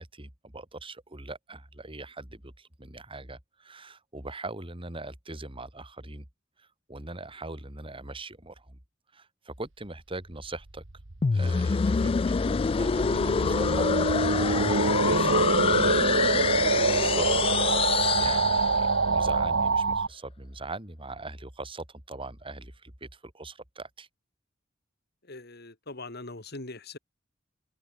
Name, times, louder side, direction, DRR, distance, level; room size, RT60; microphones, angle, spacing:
voice 1, 0.0-6.3 6.6-8.8 9.1-10.8 11.3-24.1, right 2 dB, 25° right, 3.6 m, -41 dB
sound 1, 10.8-20.1, right 3 dB, 70° right, 1.5 m, -26 dB
Alien Riser, 11.2-19.1, left 5 dB, 30° left, 0.3 m, -26 dB
voice 2, 25.2-27.0, left 2 dB, 55° left, 3.0 m, -41 dB
open air
head